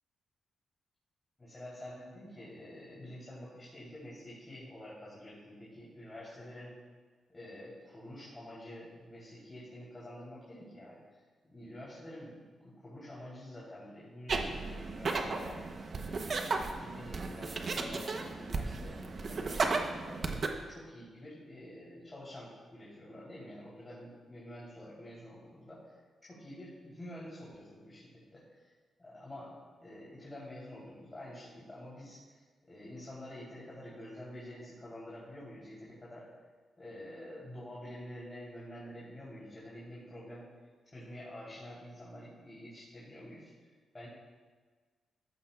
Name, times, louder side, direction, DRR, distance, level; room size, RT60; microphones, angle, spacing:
voice 1, 1.4-6.8 7.3-11.2 11.5-15.8 16.8-20.5 20.7-26.0 26.3-28.7 29.0-36.4 36.8-40.5 40.9-43.5 43.9-44.1, left 1 dB, 25° left, -8 dB, 3.6 m, -48 dB
sound 1, 14.3-20.5, right 3 dB, 50° right, 1.0 m, -35 dB
14.5 x 11.0 x 2.5 m, 1.4 s
cardioid pair, 85°, 0 cm